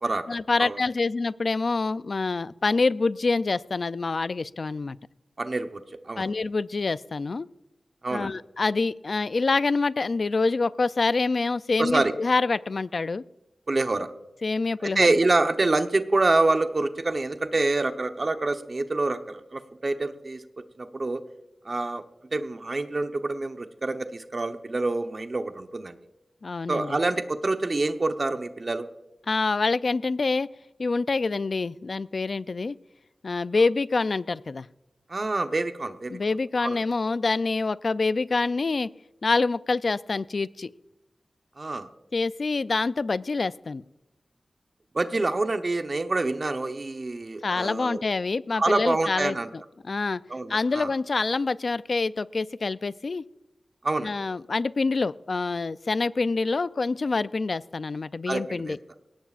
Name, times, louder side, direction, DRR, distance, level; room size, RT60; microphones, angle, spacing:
voice 1, 0.3-5.0 6.2-7.5 8.1-13.2 14.4-15.1 26.4-27.0 29.3-30.5 30.8-32.8 33.2-34.7 36.1-38.9 39.2-40.7 42.1-43.8 47.4-49.4 49.8-50.2 50.5-53.2 54.0-58.8, left 3 dB, 65° left, 16 dB, 0.4 m, -26 dB
voice 2, 5.4-6.3 8.0-8.3 11.8-12.1 13.7-14.1 14.8-20.4 20.8-21.2 21.6-22.0 22.3-26.0 26.7-28.9 35.1-36.2 36.6-36.8 41.6-41.9 44.9-48.0 48.6-49.5 50.3-50.9 53.8-54.1 58.3-58.7, right 2 dB, 50° right, 7 dB, 1.0 m, -26 dB
19.5 x 17.5 x 2.5 m, 0.96 s
cardioid pair, 50°, 0 cm